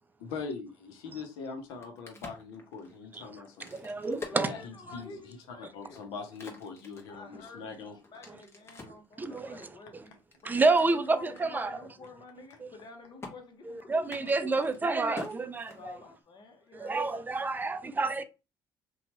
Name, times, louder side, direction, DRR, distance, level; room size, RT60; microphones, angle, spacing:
voice 1, 0.2-3.7 4.3-8.0, left 5 dB, 80° left, 0.7 m, -42 dB
Crack, 1.6-5.2 5.7-9.1 9.6-11.0 11.4-11.5 11.7-12.1 12.3-12.9 13.2-13.3 14.0-16.2, left 4 dB, 25° left, 1.1 m, -47 dB
voice 2, 3.7-4.5 8.3-8.4 9.2-10.0 10.4-11.8 12.6-12.7 13.7-15.9 16.7-18.2, right 3 dB, 20° right, 0.4 m, -29 dB
voice 3, 4.2-6.0 7.1-14.8 15.7-17.2, left 3 dB, 50° left, 1.0 m, -50 dB
2.9 x 2.3 x 2.8 m
supercardioid pair, 65°, 10 cm